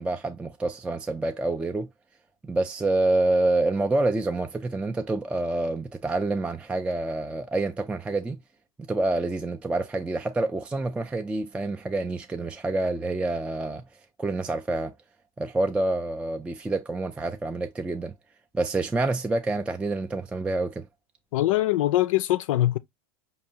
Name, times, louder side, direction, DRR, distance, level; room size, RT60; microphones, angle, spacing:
voice 1, 0.0-1.9 2.4-8.4 8.9-13.9 14.2-14.9 15.4-18.1 18.5-20.8, right 2 dB, 5° right, 0.3 m, -27 dB
voice 2, 21.3-22.8, left 15 dB, 70° left, 0.4 m, -22 dB
4.6 x 2.7 x 2.7 m
hypercardioid pair, 100°, 18 cm